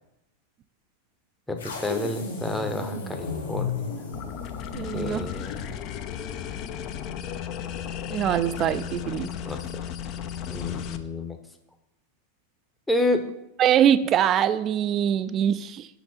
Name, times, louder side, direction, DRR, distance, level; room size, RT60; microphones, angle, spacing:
voice 1, 1.5-3.9 4.9-5.8 8.5-8.6 9.4-9.6 10.5-11.4 12.9-13.2, left 2 dB, 5° left, 5 dB, 0.7 m, -29 dB
sound 1, 1.6-5.9, left 5 dB, 70° left, 1.5 m, -34 dB
sound 2, 4.1-11.0, left 9 dB, 40° left, 0.4 m, -34 dB
voice 2, 4.7-5.3 8.1-9.3 13.6-15.9, right 10 dB, 30° right, 14 dB, 0.3 m, -23 dB
5.9 x 4.1 x 5.8 m, 0.88 s
figure-of-eight pair, 90°, 0 cm